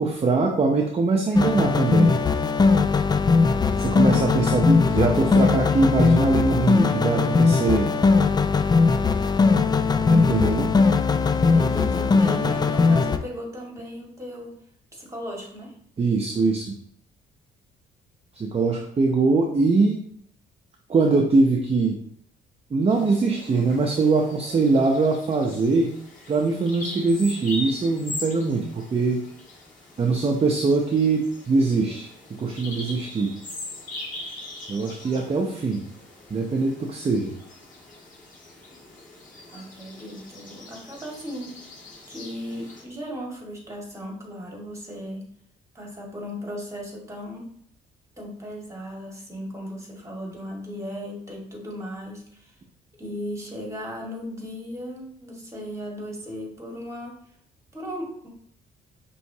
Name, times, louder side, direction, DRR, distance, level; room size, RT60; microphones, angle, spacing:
voice 1, 0.0-2.2 3.8-7.9 10.1-10.8 16.0-16.8 18.3-20.0 20.9-22.0 22.7-25.9 26.3-29.3 30.0-33.3 34.7-35.8 36.3-37.3, right 3 dB, 30° right, 1 dB, 0.6 m, -22 dB
sound 1, 1.3-13.2, left 4 dB, 20° left, 0.3 m, -19 dB
voice 2, 11.5-14.6 14.9-15.8 39.5-41.6 42.1-45.3 45.7-47.5 48.2-52.5 53.0-57.2 57.7-58.3, equal, 15° right, -1 dB, 1.7 m, -36 dB
Bird vocalization bird call bird song, 22.9-42.8, left 2 dB, 40° left, 1.6 m, -41 dB
5.7 x 3.1 x 2.7 m, 0.66 s
cardioid pair, 90°, 20 cm